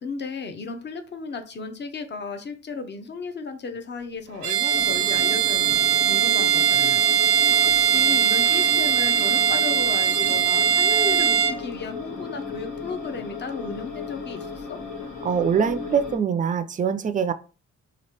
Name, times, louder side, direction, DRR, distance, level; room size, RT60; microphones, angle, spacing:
voice 1, 0.0-7.1 7.7-14.8, left 4 dB, 35° left, 7 dB, 0.7 m, -34 dB
Bowed string instrument, 4.4-11.6, right 8 dB, 85° right, 0.7 m, -20 dB
sound 1, 4.7-16.2, left 5 dB, 85° left, 1.3 m, -35 dB
voice 2, 15.2-17.3, right 7 dB, 25° right, 11 dB, 0.4 m, -23 dB
3.1 x 2.4 x 4.3 m, 0.34 s
cardioid pair, 90°, 30 cm